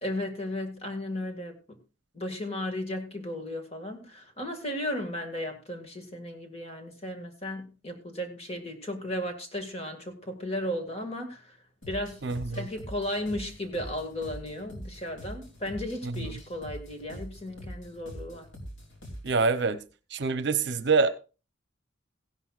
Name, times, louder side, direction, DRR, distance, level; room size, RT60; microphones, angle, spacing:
voice 1, 0.0-1.8 2.1-11.6 11.9-12.2 12.5-18.5, left 1 dB, 30° left, 2.0 m, -35 dB
sound 1, 11.8-19.5, equal, 70° left, 3.2 m, -43 dB
voice 2, 12.2-12.7 16.0-16.3 19.2-19.8 20.1-21.1, right 4 dB, 60° right, 0.8 m, -26 dB
16.5 x 11.0 x 2.4 m
head